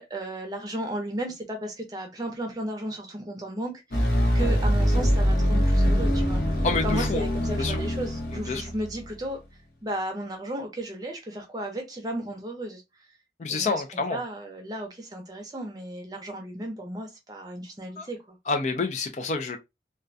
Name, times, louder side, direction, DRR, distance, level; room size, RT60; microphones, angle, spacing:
voice 1, 0.0-4.1 4.3-9.4 9.8-12.8 13.5-13.8 14.1-18.4, right 1 dB, 20° right, 0.6 m, -34 dB
sound 1, 3.9-9.2, equal, 55° left, 0.8 m, -24 dB
voice 2, 6.6-7.3 7.6-7.8 8.5-8.6 13.4-14.2 18.0-18.1 18.5-19.6, left 4 dB, 40° left, 0.3 m, -28 dB
2.3 x 2.1 x 2.5 m
head